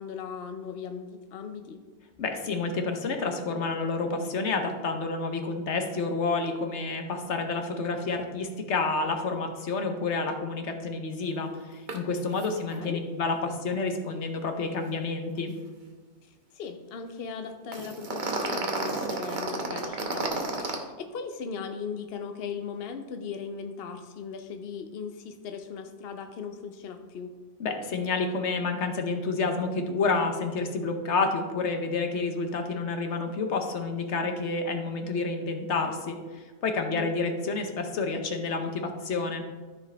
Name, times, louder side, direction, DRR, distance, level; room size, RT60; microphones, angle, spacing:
voice 1, 0.0-1.8 12.7-13.0 16.2-27.4 36.9-37.2, left 6 dB, 65° left, 7 dB, 0.9 m, -38 dB
voice 2, 2.2-15.5 27.6-39.4, left 3 dB, 85° left, 5 dB, 1.2 m, -29 dB
sound 1, 11.9-12.0 12.3-12.5 12.7-12.8 17.7-20.8, right 3 dB, 45° right, 1.1 m, -31 dB
13.5 x 4.8 x 3.4 m, 1.3 s
omnidirectional pair, 1.2 m